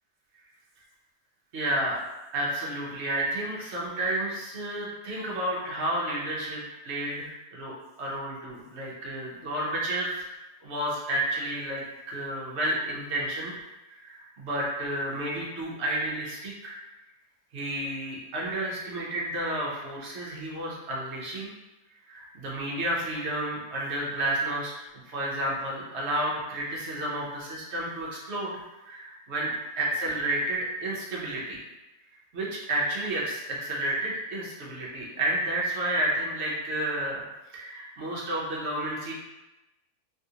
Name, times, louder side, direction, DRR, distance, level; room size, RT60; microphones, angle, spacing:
voice 1, 1.5-2.0 2.3-10.3 10.6-13.5 13.9-16.8 17.5-21.5 22.1-24.7 25.0-28.6 28.8-29.5 29.8-31.6 32.3-37.2 37.5-39.1, right 1 dB, 55° right, -4 dB, 0.9 m, -31 dB
3.4 x 2.5 x 2.8 m, 1.0 s
omnidirectional pair, 1.7 m